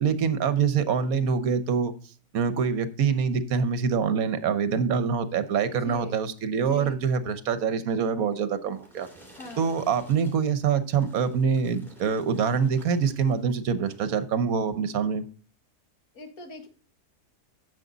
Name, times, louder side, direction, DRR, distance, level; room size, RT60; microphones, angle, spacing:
voice 1, 0.0-1.9 2.3-9.1 9.6-15.3, right 6 dB, 65° right, 12 dB, 1.3 m, -25 dB
voice 2, 5.7-6.2 6.5-7.0 9.4-9.7 16.2-16.7, left 2 dB, 65° left, 5 dB, 2.0 m, -41 dB
sound 1, 8.3-13.5 13.8-14.2 14.8-14.9, right 1 dB, ahead, 2.6 m, -53 dB
9.9 x 7.3 x 3.9 m, 0.40 s
omnidirectional pair, 1.6 m